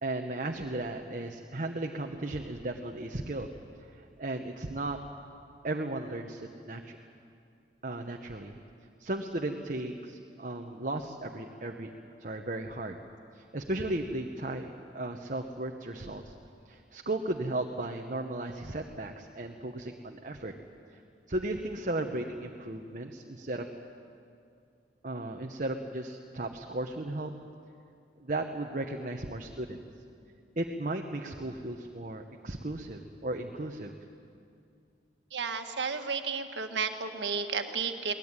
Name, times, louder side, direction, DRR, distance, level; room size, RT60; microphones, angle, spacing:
voice 1, 0.0-3.5 4.0-5.0 5.6-7.0 7.8-8.6 9.0-11.9 12.2-13.0 13.3-16.3 16.7-20.5 20.9-21.0 21.3-23.7 25.0-27.3 28.2-29.8 30.6-33.9, right 2 dB, 50° right, 3 dB, 1.2 m, -35 dB
voice 2, 35.3-38.1, right 5 dB, 90° right, 6 dB, 1.7 m, -32 dB
21.5 x 19.5 x 9.8 m, 2.4 s
head